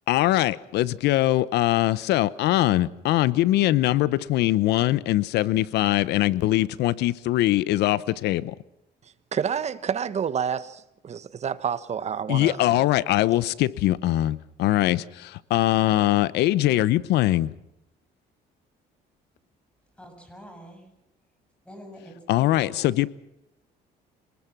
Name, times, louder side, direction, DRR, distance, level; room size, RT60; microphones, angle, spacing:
voice 1, 0.1-8.5 12.3-17.5 22.3-23.1, left 15 dB, 80° left, 0.9 m, -22 dB
voice 2, 9.3-12.8, right 7 dB, 40° right, 1.2 m, -29 dB
voice 3, 20.0-20.9 21.7-22.9, equal, 5° left, 7.3 m, -45 dB
26.5 x 20.0 x 6.1 m
cardioid pair, 110°, 17 cm